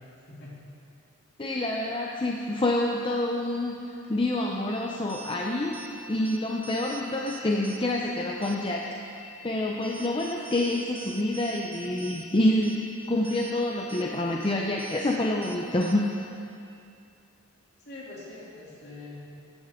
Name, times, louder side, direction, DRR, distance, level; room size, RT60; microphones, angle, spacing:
voice 1, 1.4-5.8 6.1-8.8 9.1-12.8 13.1-16.0, left 1 dB, 25° left, -1 dB, 0.6 m, -27 dB
sound 1, 4.7-16.3, equal, 10° right, 0.9 m, -46 dB
voice 2, 17.8-19.2, left 2 dB, 55° left, -6 dB, 2.8 m, -43 dB
14.5 x 10.0 x 3.7 m, 2.5 s
head